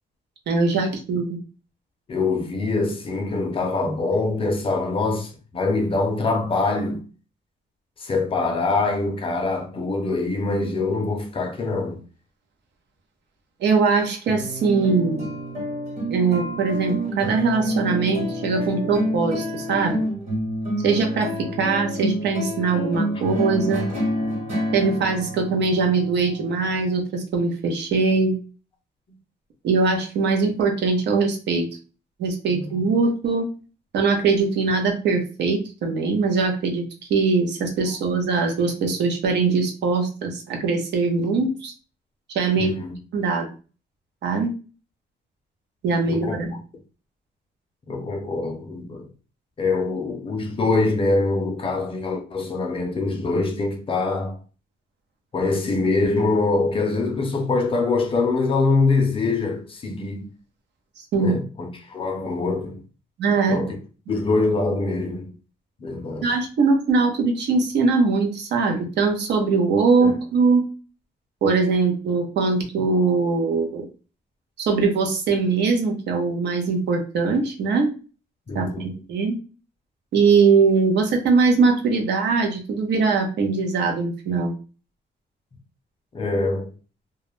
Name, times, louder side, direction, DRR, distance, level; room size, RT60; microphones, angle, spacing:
voice 1, 0.5-1.4 13.6-15.3 16.1-20.0 20.8-23.8 24.7-28.4 29.6-31.7 32.2-33.5 33.9-41.7 42.3-42.7 43.1-43.5 44.2-44.5 45.8-46.5 61.0-61.4 63.2-63.6 66.2-70.6 71.4-73.9 74.6-77.9 78.5-79.4 80.1-84.5, right 4 dB, 70° right, 0.7 m, -21 dB
voice 2, 2.1-7.0 8.0-12.0 32.5-32.8 42.6-42.9 46.1-46.3 47.9-49.1 49.6-54.4 55.3-60.3 61.1-62.8 63.5-63.8 64.1-65.3 65.8-66.3 70.0-70.1 78.5-78.9 86.1-86.7, left 3 dB, 30° left, 0.5 m, -24 dB
sound 1, 14.3-27.0, equal, 40° right, 1.1 m, -28 dB
2.3 x 2.0 x 3.0 m
cardioid pair, 165°, 18 cm